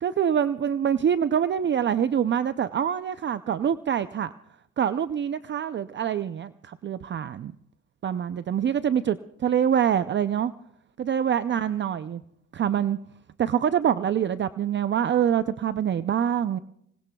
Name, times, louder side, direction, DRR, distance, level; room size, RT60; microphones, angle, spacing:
voice 1, 0.0-4.3 4.8-7.5 8.0-10.5 11.0-12.2 12.5-13.0 13.4-16.6, right 9 dB, 40° right, 12 dB, 0.5 m, -25 dB
26.0 x 20.0 x 2.3 m, 0.74 s
cardioid pair, 90°, 30 cm